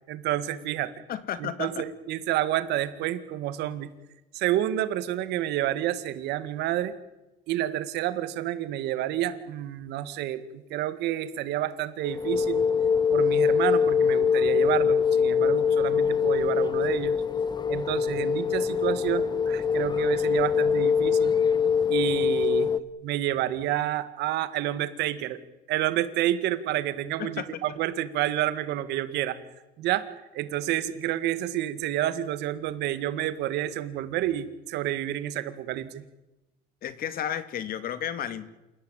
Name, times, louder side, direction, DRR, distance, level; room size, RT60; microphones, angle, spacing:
voice 1, 0.1-0.9 1.4-3.9 4.3-6.9 7.5-12.7 13.1-17.2 17.7-21.3 21.9-22.7 23.0-25.4 25.7-29.4 29.8-36.0, right 13 dB, 85° right, 13 dB, 2.0 m, -29 dB
voice 2, 1.1-1.8 27.2-27.5 36.8-38.5, left 10 dB, 60° left, 13 dB, 2.2 m, -32 dB
sound 1, 12.0-22.8, left 6 dB, 25° left, 1.1 m, -23 dB
28.0 x 16.5 x 9.1 m, 1.0 s
cardioid pair, 110°, 17 cm